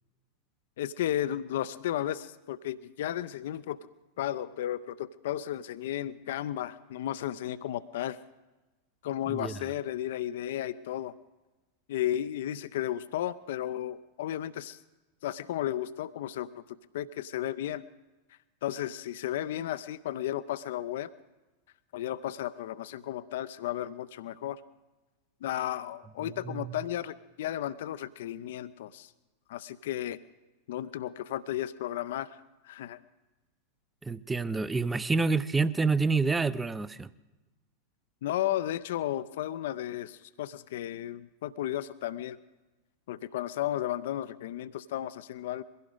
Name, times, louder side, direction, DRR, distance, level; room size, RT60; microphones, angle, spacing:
voice 1, 0.8-3.8 4.2-8.2 9.0-11.1 11.9-14.8 15.2-17.8 18.6-21.1 21.9-24.6 25.4-29.1 29.5-30.2 30.7-33.0 38.2-42.4 43.1-45.6, left 12 dB, 55° left, 14 dB, 0.5 m, -34 dB
voice 2, 34.0-37.1, right 4 dB, 10° right, 17 dB, 0.5 m, -28 dB
22.5 x 16.5 x 3.8 m, 1.1 s
figure-of-eight pair, 90°, 0 cm